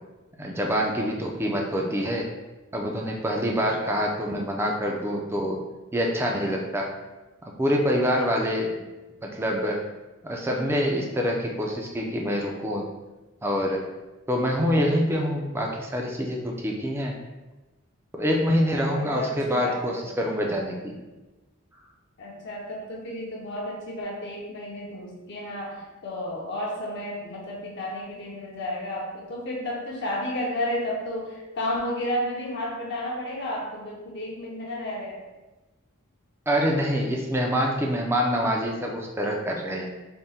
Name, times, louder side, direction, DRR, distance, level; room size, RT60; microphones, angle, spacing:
voice 1, 0.3-2.3 2.7-5.6 5.9-6.9 7.6-8.7 9.2-9.8 10.2-12.9 13.4-13.8 14.3-17.2 18.1-21.0 36.5-39.9, equal, 10° right, 0 dB, 0.4 m, -26 dB
voice 2, 18.5-20.1 22.2-35.3, left 1 dB, 55° left, -3 dB, 0.7 m, -32 dB
3.6 x 2.1 x 4.1 m, 1.1 s
head